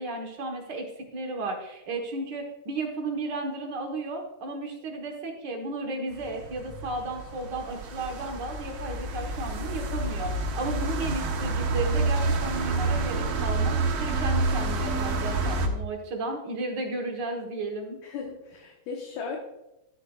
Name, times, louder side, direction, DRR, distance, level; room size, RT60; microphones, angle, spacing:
voice 1, 0.0-18.0, right 2 dB, 75° right, 1 dB, 1.0 m, -34 dB
sound 1, 6.1-15.7, right 3 dB, 60° right, 1.8 m, -28 dB
voice 2, 18.0-19.4, left 5 dB, 70° left, 0 dB, 2.4 m, -36 dB
13.0 x 8.8 x 2.4 m, 0.90 s
omnidirectional pair, 3.8 m